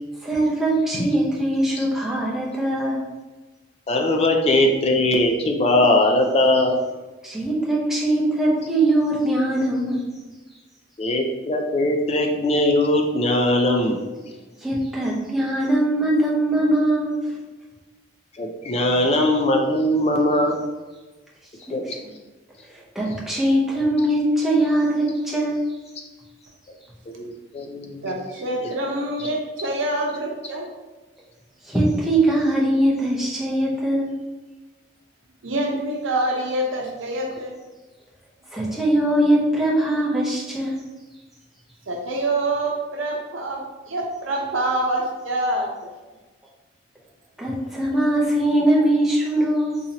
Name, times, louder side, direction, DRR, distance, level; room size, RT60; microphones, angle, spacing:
voice 1, 0.2-3.0 7.2-10.1 14.6-17.3 22.9-25.6 31.6-34.2 38.5-40.8 47.4-49.8, right 1 dB, ahead, -5 dB, 0.7 m, -21 dB
voice 2, 3.9-6.8 11.0-14.0 18.4-20.6 21.7-21.8 27.1-28.0 28.6-28.7, left 1 dB, 30° left, 2 dB, 0.3 m, -20 dB
voice 3, 28.0-30.7 35.4-37.5 41.9-43.6 43.9-45.7, right 1 dB, 80° right, 1 dB, 0.7 m, -26 dB
3.9 x 2.9 x 2.8 m, 1.2 s
head